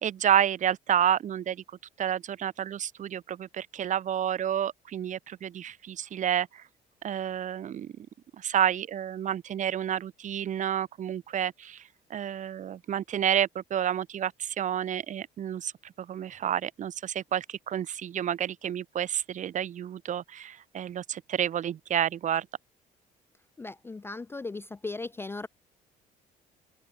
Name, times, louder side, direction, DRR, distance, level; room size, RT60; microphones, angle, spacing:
voice 1, 0.0-1.6 2.0-6.6 7.0-8.1 8.4-11.8 12.1-22.5, right 10 dB, 45° right, 1.0 m, -30 dB
voice 2, 23.6-25.5, left 3 dB, 15° left, 0.4 m, -37 dB
open air
cardioid pair, 110°, 17 cm